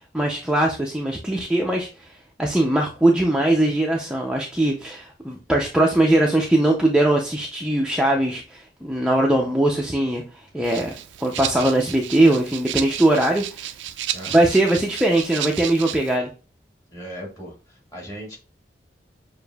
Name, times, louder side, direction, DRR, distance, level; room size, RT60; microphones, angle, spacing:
voice 1, 0.1-13.7 14.3-16.3, right 1 dB, 5° right, 0 dB, 0.4 m, -21 dB
Rattle (instrument), 10.6-16.2, right 12 dB, 85° right, 0.4 m, -32 dB
voice 2, 14.1-14.5 16.9-18.4, equal, 20° left, -2 dB, 1.7 m, -37 dB
6.6 x 2.6 x 2.3 m, 0.34 s
head